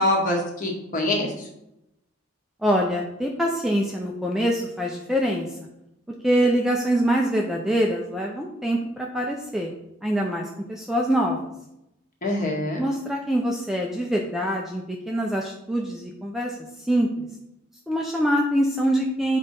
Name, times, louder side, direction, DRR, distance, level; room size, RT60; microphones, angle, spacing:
voice 1, 0.0-1.5 12.2-12.8, left 1 dB, 40° left, -1 dB, 1.7 m, -24 dB
voice 2, 2.6-5.6 6.2-9.7 10.0-11.5 12.8-17.3 17.9-19.4, equal, ahead, 0 dB, 0.6 m, -24 dB
7.5 x 4.2 x 5.3 m, 0.84 s
head